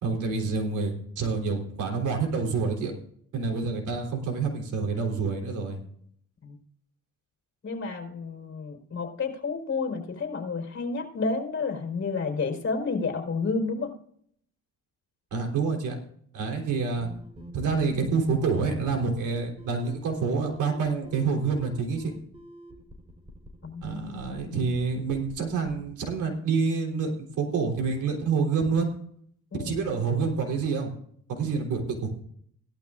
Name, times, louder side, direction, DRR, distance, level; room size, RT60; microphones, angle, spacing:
voice 1, 0.0-2.9 3.3-5.8 15.3-16.0 16.3-17.1 17.5-22.1 23.8-28.9 29.6-30.9 31.3-32.1, right 4 dB, 75° right, 2 dB, 3.7 m, -27 dB
voice 2, 7.6-13.9 23.6-24.6 29.5-29.8, left 4 dB, 40° left, 3 dB, 4.2 m, -31 dB
sound 1, 17.0-25.9, equal, 20° right, 4.1 m, -46 dB
17.5 x 12.5 x 2.5 m, 0.64 s
cardioid pair, 90°, 30 cm